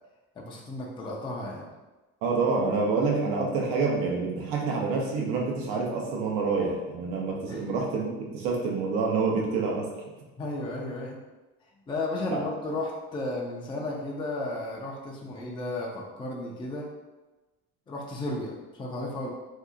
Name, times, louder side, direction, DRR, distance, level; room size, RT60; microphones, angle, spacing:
voice 1, 0.4-1.7 7.5-7.6 10.4-11.2 11.9-16.9 17.9-19.3, left 2 dB, 15° left, -3 dB, 0.5 m, -34 dB
voice 2, 2.2-9.9 12.3-12.4, right 4 dB, 75° right, -1 dB, 0.9 m, -27 dB
2.8 x 2.3 x 3.7 m, 1.1 s
supercardioid pair, 115°, 34 cm